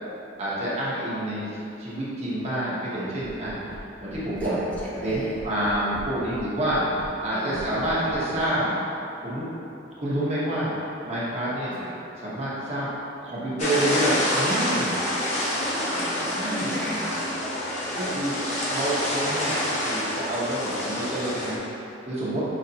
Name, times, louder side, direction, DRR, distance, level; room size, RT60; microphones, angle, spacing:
voice 1, 0.4-1.5 1.8-3.5 4.0-4.6 5.0-8.8 9.2-9.5 10.0-10.7 11.0-11.7 12.2-12.9 13.2-15.0 16.3-17.0 17.9-18.4 18.6-21.6 22.0-22.4, right 1 dB, 35° right, -9 dB, 1.0 m, -28 dB
sound 1, 3.2-3.8 4.1-4.8 5.1-6.4 6.7-7.1 7.5-8.4, right 1 dB, 55° right, 0.5 m, -39 dB
voice 2, 4.4-5.3 7.3-7.9 11.7-11.9 15.5-17.2, equal, 10° left, -8 dB, 0.8 m, -35 dB
sound 2, 13.6-21.6, left 1 dB, 40° left, 0.7 m, -27 dB
5.1 x 3.2 x 2.8 m, 2.8 s
head